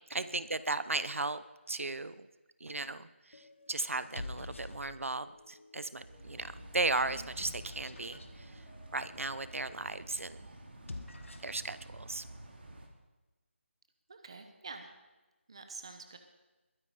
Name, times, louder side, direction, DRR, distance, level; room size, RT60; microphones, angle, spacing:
voice 1, 0.1-2.3 2.6-8.6 8.9-10.4 11.4-12.2, right 3 dB, 90° right, 14 dB, 0.8 m, -36 dB
sound 1, 2.7-3.1 3.9-5.3 6.0-8.3 10.7-11.6, left 2 dB, 75° left, 1.6 m, -47 dB
sound 2, 3.3-10.1, left 3 dB, 55° left, 3.0 m, -62 dB
sound 3, 5.9-12.9, right 1 dB, 55° right, 2.7 m, -51 dB
voice 2, 14.1-14.9 15.5-16.2, right 4 dB, 25° right, 7 dB, 1.0 m, -47 dB
21.5 x 9.7 x 5.0 m, 1.1 s
figure-of-eight pair, 180°, 7 cm